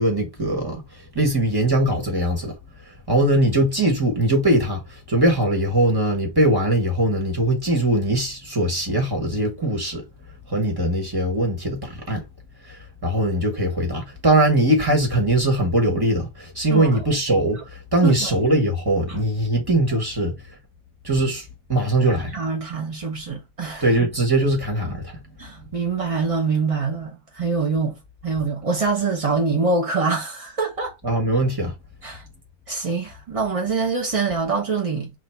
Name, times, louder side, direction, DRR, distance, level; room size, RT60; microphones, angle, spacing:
voice 1, 0.0-2.5 2.9-10.0 10.5-12.2 12.6-20.3 21.0-22.4 23.8-25.2 31.0-31.7, right 1 dB, 15° right, 1.1 m, -21 dB
voice 2, 22.3-23.8 25.4-28.0 28.2-30.9 32.0-32.2 32.7-35.1, right 4 dB, 65° right, 0.3 m, -24 dB
3.1 x 2.5 x 4.4 m
omnidirectional pair, 2.0 m